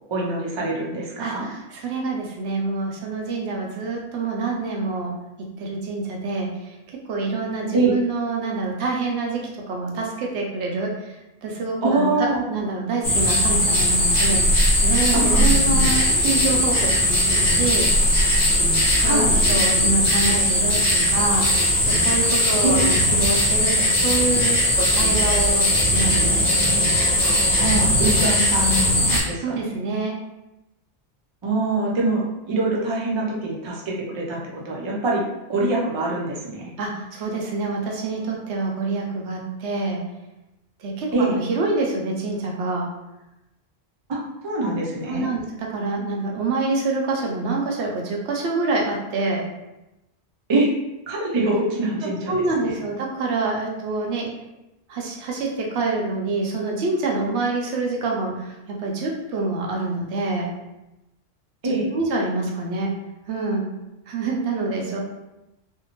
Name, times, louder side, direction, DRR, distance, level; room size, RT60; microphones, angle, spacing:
voice 1, 0.1-1.5 7.7-7.9 11.8-12.6 15.1-15.4 19.0-19.3 22.6-22.8 27.6-29.7 31.4-35.2 35.5-36.7 41.1-41.4 44.1-45.3 50.5-50.7 51.1-52.8 61.6-61.9, right 2 dB, 40° right, -3 dB, 0.4 m, -24 dB
voice 2, 1.2-5.1 5.6-6.7 7.1-9.4 9.7-10.9 11.4-17.9 19.0-21.5 21.9-26.4 29.1-30.1 36.8-40.0 40.8-42.9 45.1-49.4 52.0-54.3 54.9-60.5 61.9-62.9 63.3-63.6 64.1-65.0, right 3 dB, 90° right, -1 dB, 0.9 m, -26 dB
sound 1, 13.0-29.2, left 1 dB, 45° left, 0.8 m, -19 dB
2.6 x 2.1 x 2.9 m, 0.95 s
omnidirectional pair, 1.1 m